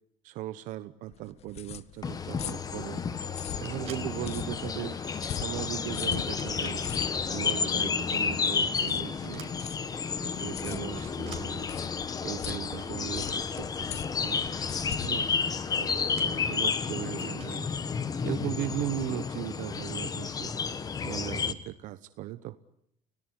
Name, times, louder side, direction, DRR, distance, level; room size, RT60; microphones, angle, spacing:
voice 1, 0.2-3.0 3.6-5.0 5.3-6.8 7.3-9.6 10.2-11.7 12.2-14.5 15.0-15.3 15.8-17.7 18.2-20.5 21.0-22.6, right 15 dB, 70° right, 12 dB, 1.0 m, -38 dB
sound 1, 1.1-16.3, left 10 dB, 50° left, 1.2 m, -42 dB
sound 2, 2.0-21.5, left 5 dB, 30° left, 1.5 m, -31 dB
sound 3, 3.4-4.0 4.8-5.4 6.2-6.8 9.2-9.5 10.2-10.4 10.8-11.4 12.7-13.4 14.4-15.0 15.8-16.4 17.1-17.6, right 11 dB, 55° right, 4.8 m, -50 dB
30.0 x 18.0 x 9.8 m, 0.72 s
cardioid pair, 145°, 14 cm